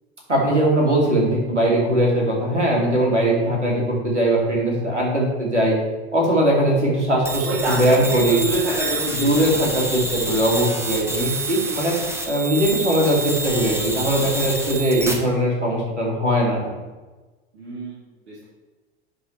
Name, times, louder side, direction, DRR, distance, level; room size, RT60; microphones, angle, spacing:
voice 1, 0.3-5.8 6.1-8.4 9.2-11.9 12.3-16.7, right 1 dB, 90° right, -2 dB, 2.5 m, -20 dB
sound 1, 7.3-15.1, right 1 dB, 5° right, 1.4 m, -28 dB
voice 2, 7.4-9.6 14.7-15.2 17.5-18.5, right 1 dB, 70° right, -9 dB, 2.8 m, -28 dB
10.5 x 4.7 x 4.5 m, 1.2 s
figure-of-eight pair, 80°, 34 cm